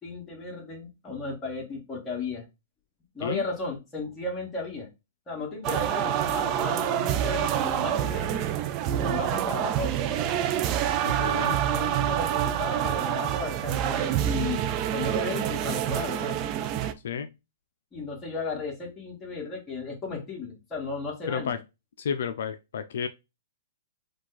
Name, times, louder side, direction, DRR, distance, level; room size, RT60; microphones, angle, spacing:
voice 1, 0.0-2.5 3.1-4.9 5.3-8.5 8.9-10.1 11.7-16.4 17.9-21.6, left 3 dB, 20° left, 1.8 m, -35 dB
sound 1, 5.6-16.9, right 10 dB, 35° right, 0.5 m, -27 dB
voice 2, 11.0-11.6 17.0-17.3 21.3-21.6 22.0-23.1, left 7 dB, 75° left, 0.4 m, -31 dB
4.8 x 2.3 x 3.9 m
hypercardioid pair, 140°, 0 cm